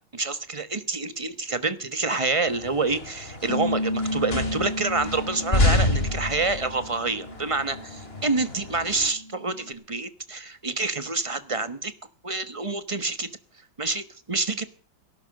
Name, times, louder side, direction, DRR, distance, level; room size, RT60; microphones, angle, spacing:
voice 1, 0.1-11.9 12.2-13.3 13.8-14.6, right 3 dB, 20° right, 1.0 m, -27 dB
sound 1, 2.5-9.1, left 2 dB, 30° left, 2.8 m, -29 dB
Bass guitar, 3.5-9.7, left 1 dB, 70° left, 2.9 m, -34 dB
18.5 x 11.5 x 6.5 m
omnidirectional pair, 2.0 m